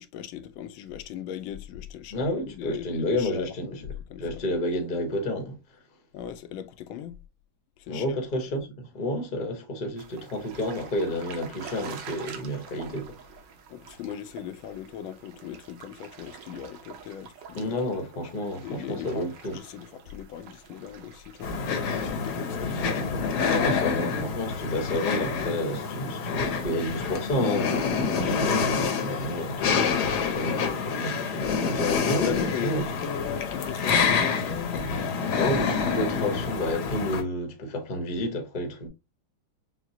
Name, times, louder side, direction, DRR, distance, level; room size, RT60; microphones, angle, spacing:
voice 1, 0.0-4.6 6.1-7.2 7.8-8.5 13.7-17.8 18.6-23.7 32.2-35.1, left 10 dB, 85° left, 1.4 m, -39 dB
voice 2, 2.1-3.7 4.2-5.6 7.9-13.2 17.5-19.6 23.5-30.0 30.2-32.8 35.3-38.9, left 1 dB, 40° left, 0.7 m, -30 dB
sound 1, 10.0-25.9, right 6 dB, 65° right, 1.4 m, -47 dB
sound 2, 21.4-37.2, left 5 dB, 65° left, 1.1 m, -27 dB
5.9 x 2.1 x 2.7 m
omnidirectional pair, 2.2 m